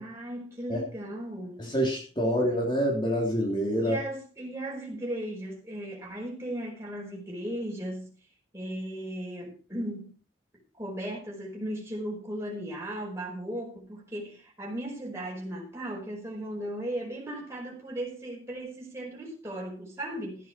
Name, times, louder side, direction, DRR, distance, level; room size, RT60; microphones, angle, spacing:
voice 1, 0.0-1.6 2.2-2.4 3.8-8.1 8.5-10.1 10.8-20.5, right 1 dB, 15° right, 4.9 m, -36 dB
voice 2, 1.6-4.0, equal, 25° left, 3.2 m, -26 dB
15.0 x 9.9 x 4.4 m
head